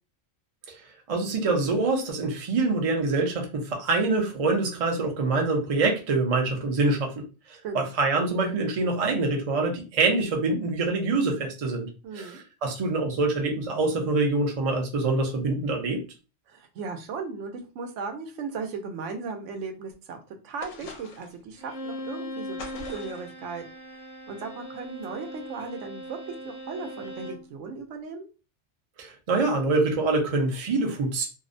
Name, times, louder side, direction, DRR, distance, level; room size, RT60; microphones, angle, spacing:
voice 1, 1.1-7.2 7.5-16.0 29.0-31.3, right 3 dB, 45° right, 2 dB, 0.5 m, -25 dB
voice 2, 12.0-12.4 16.5-23.6 24.3-28.3, right 4 dB, 80° right, 5 dB, 0.9 m, -37 dB
sound 1, 20.6-21.4 22.6-23.3, left 3 dB, 80° left, 1.0 m, -42 dB
Bowed string instrument, 21.6-27.5, equal, 40° left, 0.6 m, -39 dB
2.6 x 2.0 x 2.5 m, 0.32 s
omnidirectional pair, 1.3 m